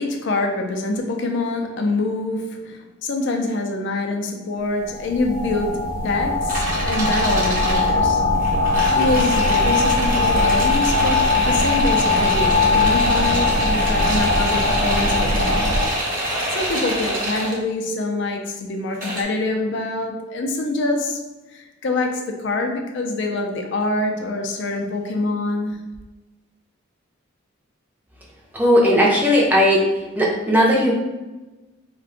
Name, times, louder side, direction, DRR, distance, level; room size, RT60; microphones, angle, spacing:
voice 1, 0.0-8.2 8.9-15.7 16.2-21.2 21.5-25.8, left 2 dB, 60° left, 3 dB, 0.4 m, -25 dB
sound 1, 4.8-15.9, left 3 dB, 80° right, 0.5 m, -20 dB
sound 2, 6.5-7.9 8.3-17.6 18.9-19.2, right 1 dB, 40° right, 0.9 m, -26 dB
voice 2, 28.5-29.8 30.1-30.9, equal, 10° right, -4 dB, 0.5 m, -16 dB
2.5 x 2.2 x 3.7 m, 1.1 s
head